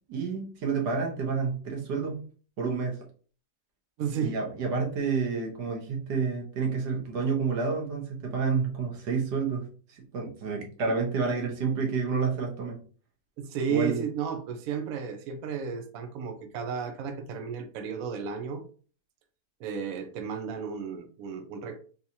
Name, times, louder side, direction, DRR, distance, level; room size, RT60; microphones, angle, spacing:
voice 1, 0.1-2.2 2.6-3.0 4.2-12.8 13.7-14.0, right 5 dB, 90° right, 1 dB, 1.6 m, -29 dB
voice 2, 4.0-4.4 13.4-18.6 19.6-21.8, right 6 dB, 65° right, 7 dB, 1.0 m, -33 dB
3.7 x 2.9 x 2.7 m, 0.40 s
omnidirectional pair, 1.8 m